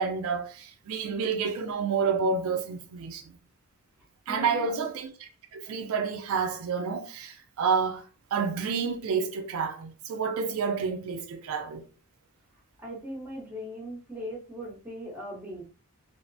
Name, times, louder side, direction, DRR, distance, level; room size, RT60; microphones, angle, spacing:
voice 1, 0.0-3.3 4.3-11.8, right 5 dB, 75° right, 0.4 m, -29 dB
voice 2, 4.0-4.9 12.8-15.7, equal, 10° right, 0.7 m, -40 dB
3.0 x 2.0 x 2.5 m
head